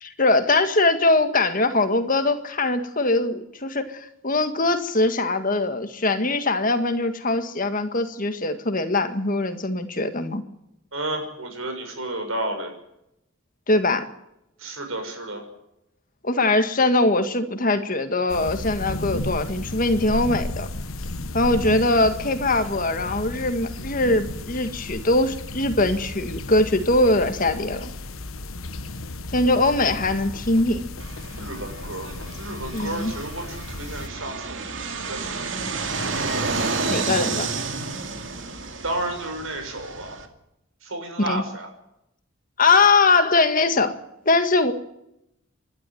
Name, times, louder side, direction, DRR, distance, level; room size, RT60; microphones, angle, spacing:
voice 1, 0.0-10.4 13.7-14.0 16.2-20.7 21.3-27.9 29.3-30.8 32.7-33.1 36.9-37.5 41.3-41.4 42.6-44.0 44.3-44.7, left 2 dB, 40° left, 8 dB, 1.8 m, -21 dB
voice 2, 10.9-12.7 14.6-15.4 31.3-35.5 38.8-40.2 40.8-41.7, right 1 dB, 85° right, 5 dB, 6.5 m, -32 dB
sound 1, 18.3-34.1, left 2 dB, 90° left, 1.3 m, -34 dB
Fixed-wing aircraft airplane, 31.0-40.3, right 4 dB, 65° right, 2.5 m, -30 dB
27.0 x 12.5 x 9.3 m, 0.83 s
head